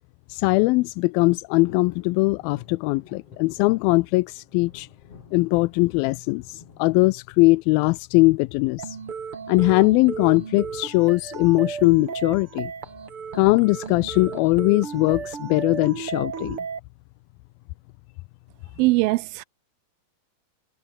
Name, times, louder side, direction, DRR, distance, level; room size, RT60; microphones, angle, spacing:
voice 1, 0.3-4.9 5.3-9.0 9.5-12.7 13.3-16.6, left 23 dB, 85° left, 2.4 m, -20 dB
sound 1, 1.6-7.7 8.2-8.8 10.1-10.5 10.7-10.8 11.1-11.4 12.2-13.2 13.6-13.7, left 6 dB, 40° left, 3.8 m, -51 dB
sound 2, 8.8-16.8, right 6 dB, 40° right, 3.1 m, -34 dB
voice 2, 18.8-19.4, right 21 dB, 85° right, 2.4 m, -21 dB
omnidirectional pair, 4.2 m